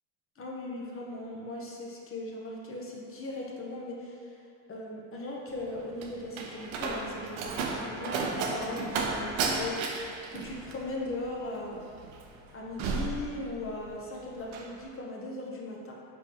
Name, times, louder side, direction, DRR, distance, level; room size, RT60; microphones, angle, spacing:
voice 1, 0.4-4.4 4.7-9.8 10.3-11.8 12.5-15.9, left 2 dB, 25° left, -2 dB, 0.8 m, -38 dB
Slam, 5.5-14.0 14.3-14.7, right 4 dB, 70° right, 0.7 m, -34 dB
4.8 x 3.7 x 3.0 m, 2.3 s
supercardioid pair, 90°, 49 cm